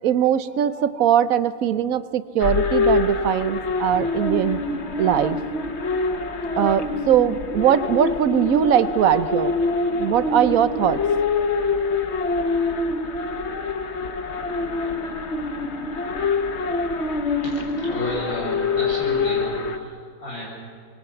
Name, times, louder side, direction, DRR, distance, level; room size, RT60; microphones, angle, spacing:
voice 1, 0.0-4.6 5.0-5.4 6.6-9.6 9.9-11.0, right 10 dB, 80° right, 13 dB, 1.2 m, -20 dB
sound 1, 2.4-19.8, left 3 dB, 55° left, 1.3 m, -25 dB
voice 2, 17.4-20.4, equal, 90° left, -3 dB, 8.4 m, -32 dB
26.0 x 22.0 x 5.9 m, 2.2 s
omnidirectional pair, 1.5 m